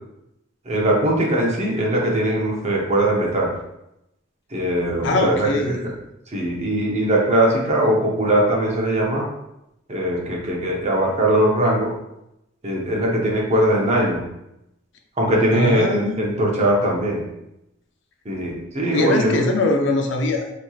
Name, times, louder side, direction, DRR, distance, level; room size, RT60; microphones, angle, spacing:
voice 1, 0.7-3.5 4.5-5.9 6.3-9.3 9.9-11.9 12.6-14.2 15.2-17.2 18.2-19.5, right 1 dB, 35° right, -2 dB, 0.8 m, -20 dB
voice 2, 5.0-5.9 15.5-16.2 18.9-20.5, left 2 dB, 65° left, 3 dB, 0.5 m, -22 dB
4.3 x 2.9 x 2.3 m, 0.86 s
head